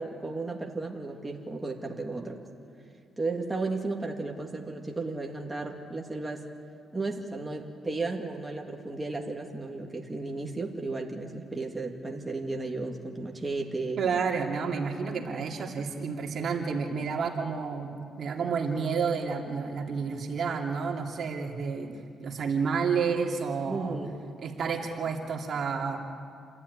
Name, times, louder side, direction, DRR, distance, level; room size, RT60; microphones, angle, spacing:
voice 1, 0.0-2.4 3.2-6.5 6.9-14.0 16.7-16.8 23.7-24.2, right 3 dB, 15° right, 0 dB, 2.3 m, -34 dB
voice 2, 14.0-17.9 18.2-21.9 22.2-24.0 24.4-26.0, right 5 dB, 55° right, 1 dB, 2.7 m, -30 dB
28.0 x 13.0 x 9.7 m, 2.4 s
cardioid pair, 90°, 0 cm